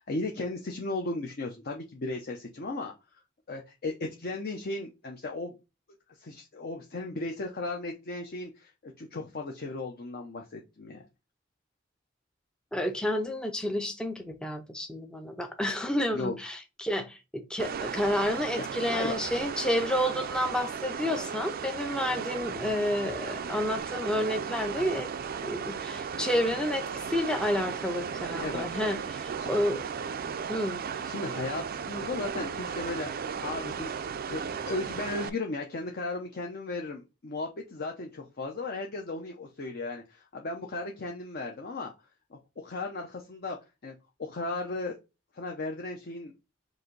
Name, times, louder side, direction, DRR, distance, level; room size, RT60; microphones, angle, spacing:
voice 1, 0.1-2.9 3.5-5.5 6.2-11.0 16.1-16.3 18.6-19.2 28.4-28.8 29.4-29.5 31.0-33.9 34.3-34.4 34.7-41.9 42.3-43.6 43.8-45.0 45.3-46.3, left 2 dB, 50° left, 0.7 m, -36 dB
voice 2, 12.7-25.1 25.4-29.8 30.5-30.8, left 1 dB, 5° left, 0.5 m, -30 dB
sound 1, 17.6-35.3, right 6 dB, 50° right, 0.4 m, -35 dB
4.8 x 2.6 x 3.8 m
head